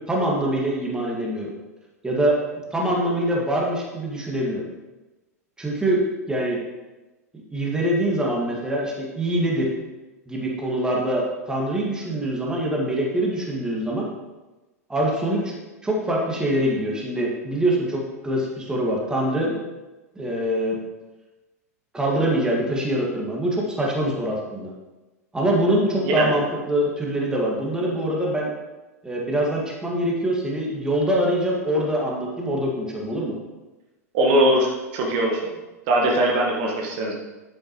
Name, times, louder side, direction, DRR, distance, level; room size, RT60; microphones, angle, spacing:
voice 1, 0.1-1.5 2.0-2.4 2.7-4.6 5.6-6.6 7.5-9.7 10.3-14.1 14.9-15.5 15.8-19.7 20.2-20.8 21.9-24.7 25.3-28.5 29.0-33.3, right 1 dB, 10° right, -3 dB, 2.1 m, -24 dB
voice 2, 34.1-35.6 35.9-37.1, right 1 dB, 45° right, -1 dB, 1.6 m, -21 dB
9.9 x 8.9 x 3.1 m, 1.1 s
figure-of-eight pair, 90°, 9 cm